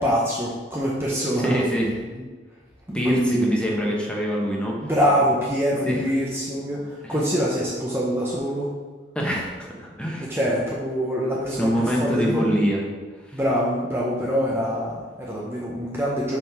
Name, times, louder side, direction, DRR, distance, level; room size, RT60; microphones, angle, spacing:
voice 1, 0.0-1.6 2.9-3.5 4.8-8.7 10.2-12.6 13.3-16.4, equal, 15° right, -5 dB, 0.9 m, -24 dB
voice 2, 1.4-2.0 2.9-4.7 5.8-6.1 7.0-7.2 9.1-10.3 11.5-12.8 13.3-13.4, equal, 5° left, -2 dB, 1.3 m, -24 dB
5.8 x 5.2 x 6.0 m, 1.4 s
head